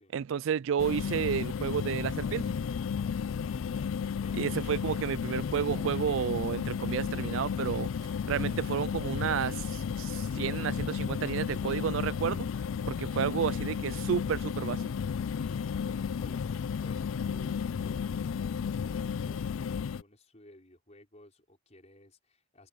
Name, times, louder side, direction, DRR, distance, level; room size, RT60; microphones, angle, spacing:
voice 1, 0.1-2.5 4.4-7.9 8.3-12.5 12.9-14.9, right 7 dB, 65° right, 0.3 m, -31 dB
sound 1, 0.8-20.0, left 6 dB, 70° left, 0.4 m, -33 dB
voice 2, 3.3-3.6 4.2-4.8 15.4-22.7, left 1 dB, 30° left, 5.5 m, -57 dB
open air
head